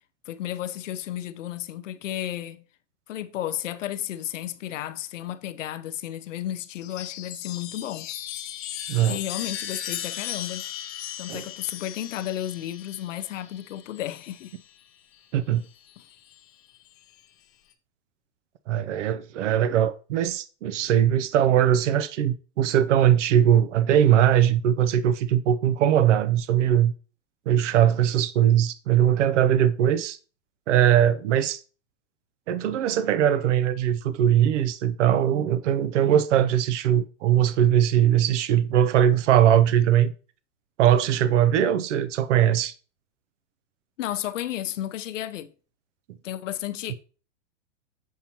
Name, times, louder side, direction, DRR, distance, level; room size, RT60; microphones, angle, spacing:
voice 1, 0.3-2.6 3.1-8.1 9.1-10.7 11.2-14.5 44.0-45.5 46.2-46.9, left 12 dB, 85° left, 0.7 m, -33 dB
Chime, 6.7-14.5 15.8-16.4, left 11 dB, 25° left, 0.5 m, -37 dB
voice 2, 8.9-9.2 11.3-11.5 15.3-15.6 18.7-26.9 27.5-30.2 30.7-31.6 32.5-40.1 40.8-42.7 46.9-47.0, right 10 dB, 75° right, 0.7 m, -21 dB
7.4 x 5.6 x 2.9 m
supercardioid pair, 155°, 37 cm